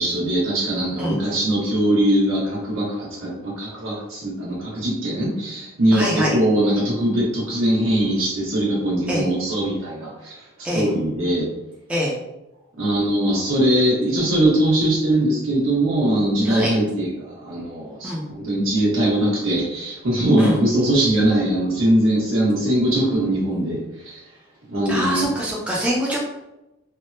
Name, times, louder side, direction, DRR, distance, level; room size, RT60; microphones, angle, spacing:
voice 1, 0.0-10.4 10.7-11.5 12.8-23.8 24.0-24.1 24.7-25.3, right 1 dB, 70° right, -5 dB, 1.2 m, -21 dB
voice 2, 5.9-6.3 9.1-9.2 10.6-10.9 11.9-12.1 16.4-16.7 18.0-18.2 20.4-20.6 24.9-26.2, equal, 5° right, -6 dB, 0.5 m, -24 dB
3.4 x 2.1 x 2.6 m, 0.94 s
head